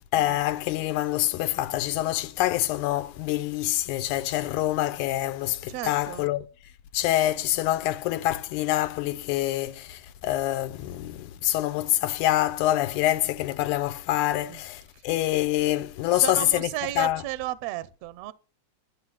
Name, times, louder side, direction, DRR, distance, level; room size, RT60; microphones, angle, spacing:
voice 1, 0.1-6.5 6.9-16.7 17.0-17.2, left 14 dB, 90° left, 2.1 m, -26 dB
voice 2, 5.7-6.3 14.5-14.6 16.1-18.3, right 16 dB, 75° right, 1.6 m, -34 dB
12.0 x 7.0 x 5.9 m
omnidirectional pair, 3.4 m